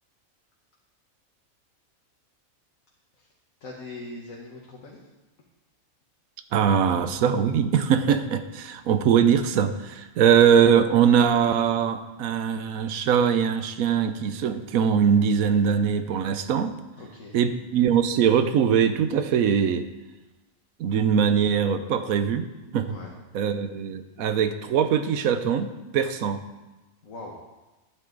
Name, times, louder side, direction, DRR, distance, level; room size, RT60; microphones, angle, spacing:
voice 1, 3.6-5.0 17.0-17.4 22.9-23.1 27.0-27.3, left 2 dB, 75° left, -2 dB, 1.7 m, -41 dB
voice 2, 6.5-16.8 17.3-19.8 20.8-22.4 22.7-23.0 23.3-26.4, right 7 dB, 85° right, 10 dB, 1.2 m, -22 dB
12.0 x 9.5 x 3.9 m, 1.1 s
omnidirectional pair, 1.4 m